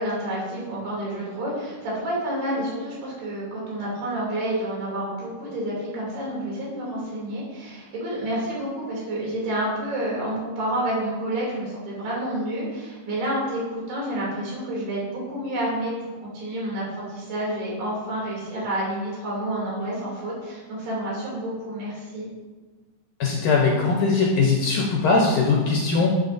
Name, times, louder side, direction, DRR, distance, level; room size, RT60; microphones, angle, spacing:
voice 1, 0.0-22.3, right 1 dB, 85° right, -6 dB, 4.9 m, -29 dB
voice 2, 23.2-26.1, left 4 dB, 75° left, -2 dB, 1.9 m, -20 dB
11.0 x 7.2 x 2.6 m, 1.3 s
omnidirectional pair, 4.5 m